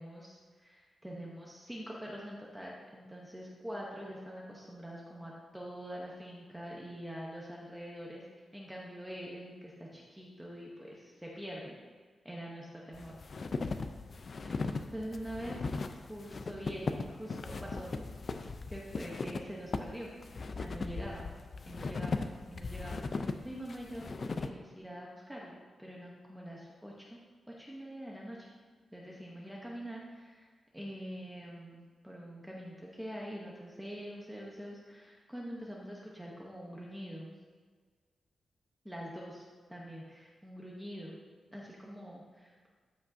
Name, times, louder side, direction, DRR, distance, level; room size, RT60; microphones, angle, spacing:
voice 1, 0.0-8.2 8.5-11.7 12.2-13.2 14.4-15.7 16.1-18.0 18.7-20.2 20.4-21.3 21.6-22.2 22.5-27.2 27.6-28.5 28.9-30.5 30.7-37.3 38.8-41.2 41.5-42.7, equal, 5° right, -3 dB, 0.8 m, -45 dB
sound 1, 12.9-24.5, left 4 dB, 40° left, 0.4 m, -38 dB
13.5 x 5.1 x 2.6 m, 1.5 s
wide cardioid pair, 165°, 0 cm